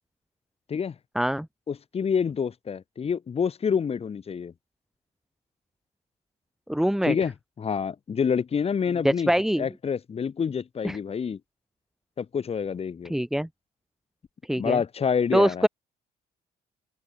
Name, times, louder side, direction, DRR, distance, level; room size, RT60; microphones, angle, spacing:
voice 1, 1.2-1.5 6.7-7.1 9.0-9.6 10.8-11.0 13.1-13.5 14.4-14.8 15.3-15.7, equal, ahead, 2.5 m, -23 dB
voice 2, 1.7-4.5 7.0-7.3 7.6-9.3 9.6-11.4 12.2-13.1 14.5-15.7, left 6 dB, 35° left, 4.1 m, -27 dB
open air
cardioid pair, 110°, 17 cm